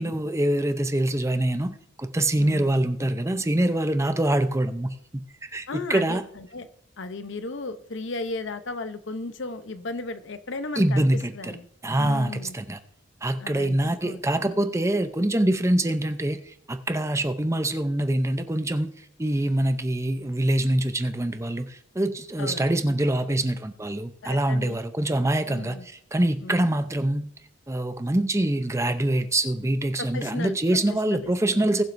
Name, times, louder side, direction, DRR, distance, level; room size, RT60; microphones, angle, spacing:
voice 1, 0.0-5.2 5.5-6.2 10.8-11.5 11.8-12.8 13.2-18.9 19.2-25.8 26.1-27.3 27.7-31.8, right 1 dB, 15° right, 9 dB, 0.6 m, -24 dB
voice 2, 2.4-2.7 5.7-6.7 7.0-11.7 12.0-12.6 13.4-13.8 14.0-14.6 22.4-22.7 24.2-24.8 25.5-25.9 26.4-26.6 30.0-31.8, left 3 dB, 60° left, 11 dB, 0.7 m, -35 dB
20.0 x 7.5 x 2.6 m, 0.67 s
head